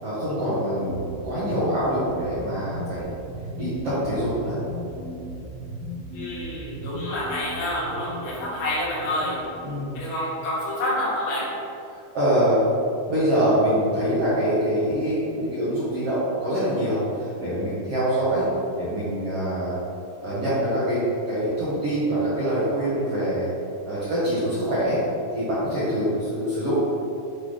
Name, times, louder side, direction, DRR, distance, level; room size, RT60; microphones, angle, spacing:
voice 1, 0.0-3.1 3.6-4.6 9.6-10.0 12.1-12.7 13.1-19.8 20.2-23.5 23.8-25.0 25.3-26.9, right 1 dB, 55° right, -13 dB, 1.8 m, -24 dB
sound 1, 0.8-10.4, equal, 75° right, 2.4 m, -37 dB
voice 2, 6.1-9.4 9.9-11.5, left 1 dB, 75° left, -7 dB, 3.5 m, -28 dB
8.2 x 3.9 x 3.3 m, 2.7 s
omnidirectional pair, 4.6 m